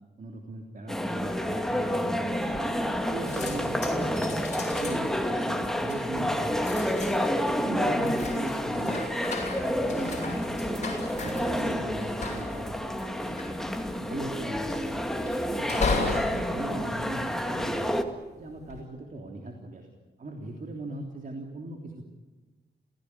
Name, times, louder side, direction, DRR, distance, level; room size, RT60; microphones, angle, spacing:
voice 1, 0.2-2.8 3.1-7.2 7.6-9.0 9.4-13.4 14.0-15.0 15.5-17.9 18.4-19.9 20.2-22.1, right 2 dB, 50° right, 2 dB, 3.4 m, -39 dB
sound 1, 0.9-18.0, equal, ahead, 2.1 m, -29 dB
sound 2, 2.5-3.0 3.3-17.8 18.4-18.8, left 3 dB, 40° left, 7.9 m, -36 dB
29.0 x 17.0 x 10.0 m, 1.2 s
wide cardioid pair, 115°, 18 cm